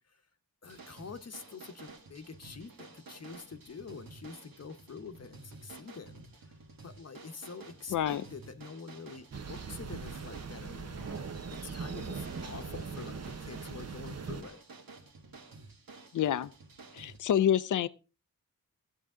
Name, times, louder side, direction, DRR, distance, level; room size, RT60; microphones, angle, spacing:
voice 1, 0.6-6.6 6.8-11.3 11.6-14.6, left 5 dB, 50° left, 0.9 m, -46 dB
sound 1, 0.6-17.2, right 3 dB, 85° right, 1.9 m, -52 dB
Thunder, 9.3-14.4, right 5 dB, 50° right, 0.8 m, -41 dB
voice 2, 16.1-16.5 16.9-17.9, left 10 dB, 65° left, 0.5 m, -27 dB
15.0 x 8.2 x 3.6 m
wide cardioid pair, 95°, 33 cm